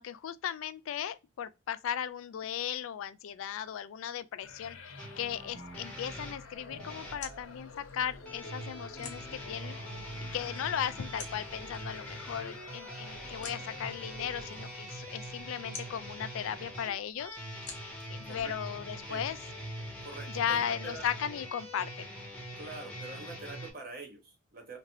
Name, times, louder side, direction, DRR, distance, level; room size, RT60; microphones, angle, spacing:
voice 1, 0.0-17.4 18.1-19.4 20.3-22.1, left 9 dB, 75° left, 0.3 m, -36 dB
sound 1, 4.4-15.0, left 3 dB, 90° left, 0.7 m, -49 dB
sound 2, 5.0-7.2 8.2-23.7, equal, 5° left, 0.9 m, -43 dB
sound 3, 6.5-19.3, left 4 dB, 35° left, 0.9 m, -52 dB
voice 2, 18.3-18.8 19.1-19.3 20.0-21.0 22.6-24.8, right 3 dB, 45° right, 0.9 m, -45 dB
2.9 x 2.6 x 2.7 m
head